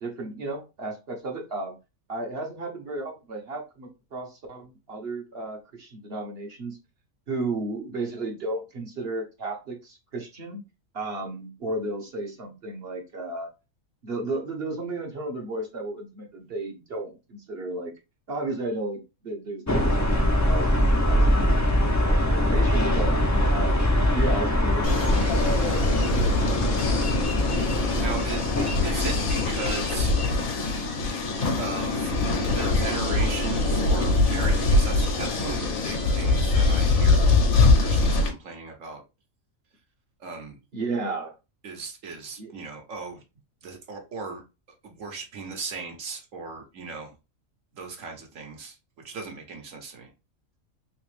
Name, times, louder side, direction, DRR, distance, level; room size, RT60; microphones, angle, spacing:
voice 1, 0.0-1.7 2.1-6.8 7.3-10.6 10.9-13.5 14.0-17.9 18.3-23.1 23.5-26.8 40.7-41.3 42.4-42.5, right 2 dB, 50° right, 2 dB, 1.0 m, -34 dB
sound 1, 19.7-30.4, left 1 dB, 25° left, 0.4 m, -23 dB
sound 2, 24.8-38.3, left 3 dB, 80° left, 1.4 m, -23 dB
voice 2, 28.0-30.1 31.6-32.1 32.5-39.0 40.2-40.6 41.6-43.2 43.6-44.4 44.8-47.1 47.8-48.8 49.0-50.1, right 4 dB, 70° right, 3 dB, 1.2 m, -37 dB
3.3 x 3.0 x 3.1 m, 0.27 s
omnidirectional pair, 1.4 m